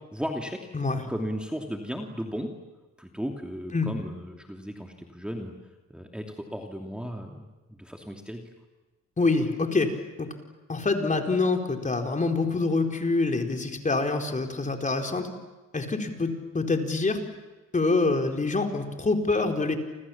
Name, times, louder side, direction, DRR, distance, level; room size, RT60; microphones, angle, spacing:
voice 1, 0.1-0.6 1.1-2.5 3.0-5.5 5.9-7.4 7.8-8.4, equal, 5° right, 2 dB, 2.9 m, -35 dB
voice 2, 9.2-9.9 10.2-10.3 10.7-15.3 15.7-17.2 17.7-19.8, left 3 dB, 25° left, 3 dB, 4.4 m, -26 dB
29.0 x 27.0 x 7.3 m, 1.2 s
cardioid pair, 90°, 30 cm